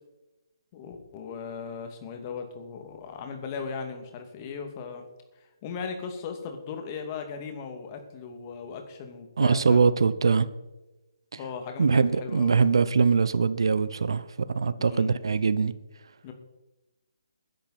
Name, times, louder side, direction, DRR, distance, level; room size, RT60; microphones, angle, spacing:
voice 1, 0.7-5.0 5.6-9.9 11.3-12.7 14.8-15.2 16.2-16.3, left 5 dB, 30° left, 2.4 m, -38 dB
voice 2, 9.4-10.5 11.8-15.7, right 5 dB, 70° right, 0.9 m, -22 dB
20.5 x 10.5 x 4.3 m
figure-of-eight pair, 145°, 3 cm